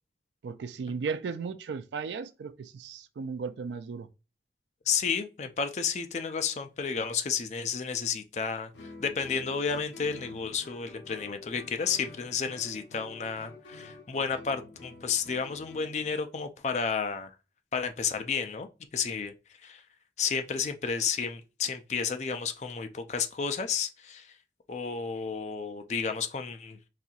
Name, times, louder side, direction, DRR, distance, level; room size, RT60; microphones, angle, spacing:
voice 1, 0.4-4.1, right 5 dB, 80° right, 0.3 m, -35 dB
voice 2, 4.9-8.7 9.0-17.3 17.7-19.3 19.6-19.8 20.2-24.4 24.7-26.9, left 6 dB, 40° left, 0.4 m, -32 dB
Guitar, 8.7-16.2, left 3 dB, 85° left, 0.8 m, -48 dB
4.2 x 2.6 x 2.4 m
head